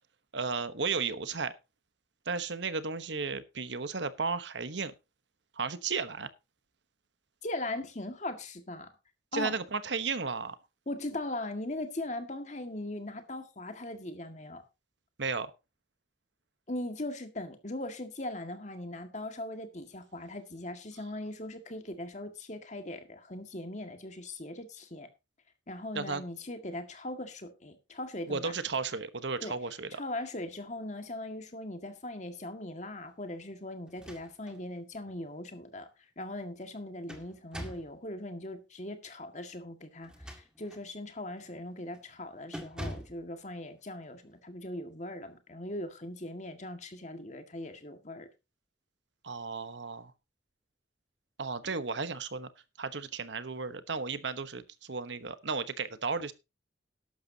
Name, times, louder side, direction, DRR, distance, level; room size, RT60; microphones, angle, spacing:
voice 1, 0.3-1.5 2.3-4.9 5.6-6.3 9.3-10.6 15.2-15.5 25.9-26.2 28.3-30.0 49.2-50.1 51.4-52.5 52.8-56.3, right 4 dB, 75° right, 1.1 m, -34 dB
voice 2, 7.4-8.9 9.3-9.6 10.9-14.6 16.7-25.1 25.7-28.5 29.4-29.5 29.9-35.9 36.2-48.3, left 1 dB, 40° left, 1.9 m, -39 dB
sound 1, 33.9-34.6 35.1-35.2 36.6-38.0 40.0-40.9 41.4-41.6 41.9-42.2 42.5-43.2, equal, 5° right, 2.0 m, -43 dB
14.0 x 11.5 x 2.8 m
head